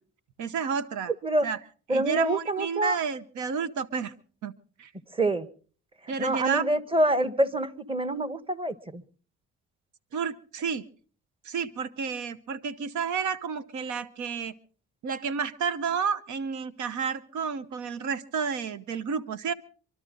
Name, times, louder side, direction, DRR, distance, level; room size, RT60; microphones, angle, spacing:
voice 1, 0.4-1.1 1.4-1.6 1.9-4.1 4.4-4.5 4.8-4.9 6.1-6.6 10.1-10.9 11.4-14.5 15.0-19.5, right 6 dB, 75° right, 14 dB, 0.9 m, -31 dB
voice 2, 1.9-3.0 5.1-5.5 6.0-9.0, right 1 dB, 20° right, 14 dB, 1.3 m, -26 dB
25.5 x 12.5 x 3.8 m, 0.41 s
cardioid pair, 90°, 30 cm